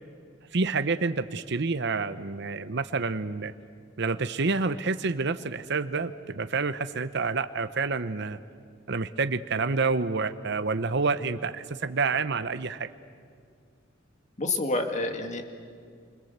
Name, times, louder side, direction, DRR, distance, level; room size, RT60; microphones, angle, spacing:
voice 1, 0.5-3.5 4.0-8.4 8.9-12.9, right 4 dB, 60° right, 10 dB, 0.8 m, -28 dB
voice 2, 14.4-15.4, left 2 dB, 35° left, 5 dB, 2.3 m, -28 dB
29.0 x 25.5 x 8.1 m, 2.2 s
head